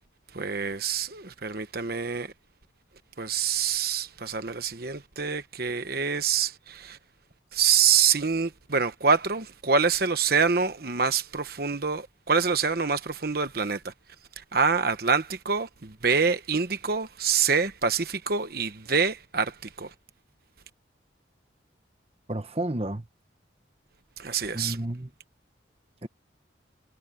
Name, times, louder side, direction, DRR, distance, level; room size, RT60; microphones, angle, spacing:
voice 1, 0.3-2.3 3.2-7.0 7.5-13.9 14.4-19.9 24.2-24.8, right 6 dB, 50° right, 1.1 m, -26 dB
voice 2, 22.3-23.0 24.5-25.1 26.0-26.1, right 1 dB, 30° right, 1.2 m, -31 dB
head